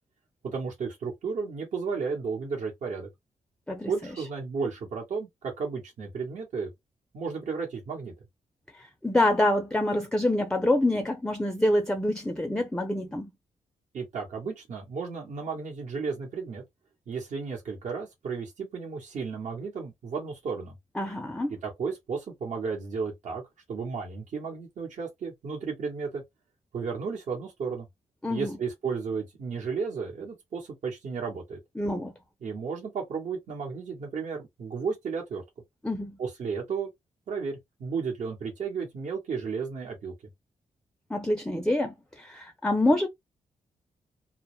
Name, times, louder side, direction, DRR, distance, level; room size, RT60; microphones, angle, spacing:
voice 1, 0.4-3.1 3.9-6.7 7.1-8.1 13.9-16.6 17.1-20.8 21.5-23.4 23.7-26.2 26.7-27.9 28.3-31.6 32.4-35.4 36.2-36.9 37.3-40.1, right 5 dB, 70° right, 1.0 m, -33 dB
voice 2, 8.7-13.3 21.0-21.5 28.2-28.6 31.8-32.1 35.8-36.2 41.1-43.1, left 1 dB, 5° left, 0.4 m, -26 dB
2.1 x 2.0 x 2.9 m
cardioid pair, 80°, 13 cm